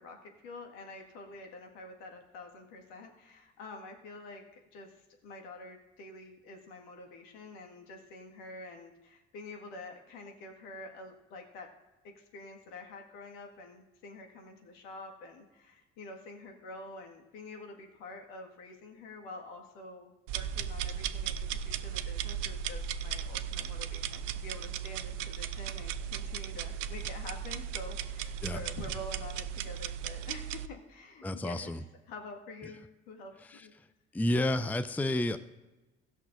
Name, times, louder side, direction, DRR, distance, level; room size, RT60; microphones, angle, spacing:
voice 1, 0.0-11.7 12.0-33.3 33.6-33.7, left 2 dB, 70° left, 2 dB, 1.9 m, -47 dB
sound 1, 20.3-30.7, right 8 dB, 75° right, 0.6 m, -36 dB
voice 2, 31.2-31.8 34.1-35.4, left 1 dB, 5° left, 10 dB, 0.6 m, -30 dB
18.5 x 6.5 x 2.6 m, 1.1 s
hypercardioid pair, 50°, 36 cm